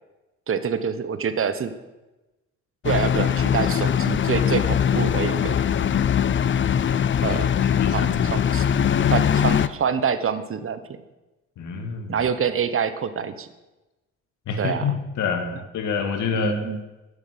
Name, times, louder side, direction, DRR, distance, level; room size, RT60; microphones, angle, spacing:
voice 1, 0.5-1.7 2.8-5.6 7.2-7.5 7.9-8.7 9.1-10.8 12.1-13.5 14.6-14.9 16.3-16.8, right 7 dB, 45° right, 12 dB, 1.1 m, -26 dB
sound 1, 2.8-9.7, left 8 dB, 40° left, 0.6 m, -21 dB
voice 2, 7.7-8.4 11.6-12.2 14.5-15.5 15.7-16.6, left 6 dB, 75° left, 6 dB, 2.1 m, -27 dB
11.5 x 10.5 x 6.0 m, 1.1 s
cardioid pair, 90°, 30 cm